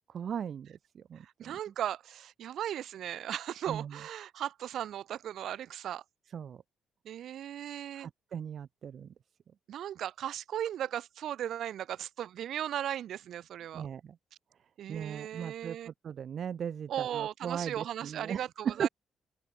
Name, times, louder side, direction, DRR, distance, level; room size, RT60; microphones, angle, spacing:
voice 1, 0.1-0.8 1.1-1.2 3.7-3.9 6.3-6.6 7.9-9.1 13.7-14.1 14.9-18.9, right 8 dB, 55° right, 1.8 m, -37 dB
voice 2, 1.2-6.0 7.0-8.1 9.7-13.9 14.8-15.9 16.9-18.9, right 11 dB, 70° right, 4.1 m, -37 dB
cardioid pair, 90°, 0 cm